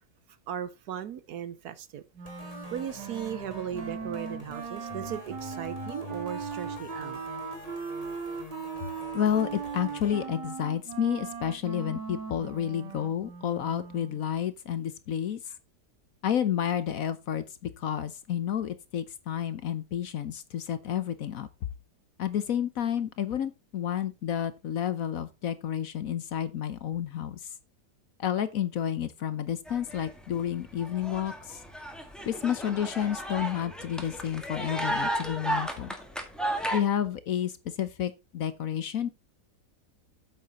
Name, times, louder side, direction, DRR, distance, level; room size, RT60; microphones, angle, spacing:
voice 1, 0.5-2.0 2.7-7.2, right 9 dB, 65° right, 1.3 m, -37 dB
sound 1, 2.2-10.3, left 4 dB, 20° left, 2.3 m, -46 dB
Wind instrument woodwind instrument, 2.2-14.2, right 6 dB, 90° right, 2.1 m, -39 dB
voice 2, 9.1-15.5 16.2-17.4 17.8-21.5 22.2-27.5 28.2-31.6 32.3-35.9 36.7-39.1, left 9 dB, 60° left, 1.1 m, -30 dB
sound 2, 29.7-30.4 30.7-36.8, right 1 dB, ahead, 1.7 m, -34 dB
8.6 x 7.6 x 4.1 m
omnidirectional pair, 1.8 m